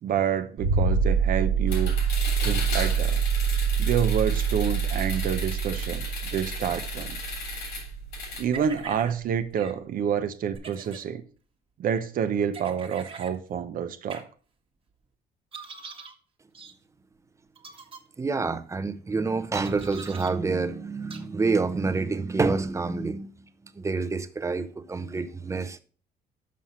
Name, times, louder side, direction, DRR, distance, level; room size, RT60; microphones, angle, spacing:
voice 1, 0.0-1.9 2.4-3.2 3.8-6.1 6.3-7.2 8.4-11.2 11.8-14.3, right 8 dB, 55° right, 0.8 m, -28 dB
sound 1, 0.6-9.0 10.5-10.6, right 7 dB, 80° right, 1.3 m, -26 dB
sound 2, 1.7-8.4, left 4 dB, 85° left, 3.4 m, -36 dB
sound 3, 8.5-9.1 9.5-9.7 10.5-11.0 12.5-13.3 14.1-14.2 15.5-16.1 16.5-16.7 17.6-18.0 19.5-20.3 21.1-21.2, right 5 dB, 30° right, 1.3 m, -42 dB
voice 2, 18.2-23.3 23.7-25.8, right 4 dB, 15° right, 0.7 m, -27 dB
6.3 x 5.7 x 5.6 m
cardioid pair, 110°, 17 cm